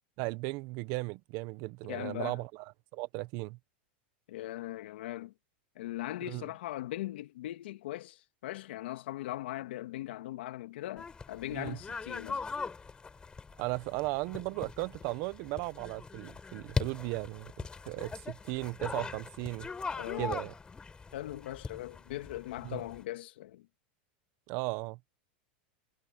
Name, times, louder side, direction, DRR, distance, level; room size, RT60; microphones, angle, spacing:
voice 1, 0.2-2.5 2.9-3.6 6.2-6.5 11.5-11.8 13.6-19.7 20.2-20.5 22.6-22.8 24.5-25.0, right 23 dB, 55° right, 1.3 m, -36 dB
voice 2, 1.9-2.4 4.3-5.3 5.8-12.4 20.0-20.4 21.1-23.7, left 15 dB, 75° left, 2.5 m, -40 dB
sound 1, 11.0-23.0, left 4 dB, 15° left, 5.5 m, -41 dB
supercardioid pair, 125°, 6 cm